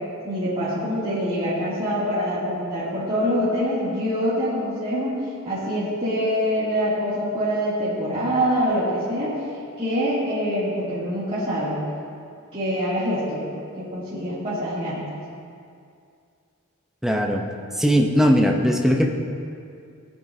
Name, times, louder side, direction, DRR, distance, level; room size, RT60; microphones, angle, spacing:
voice 1, 0.2-5.2 5.4-9.3 9.8-11.8 12.5-13.4 13.8-15.0, equal, 25° right, -13 dB, 2.8 m, -25 dB
voice 2, 17.0-17.4 17.7-19.1, equal, ahead, 1 dB, 0.8 m, -19 dB
17.0 x 8.9 x 2.8 m, 2.4 s
head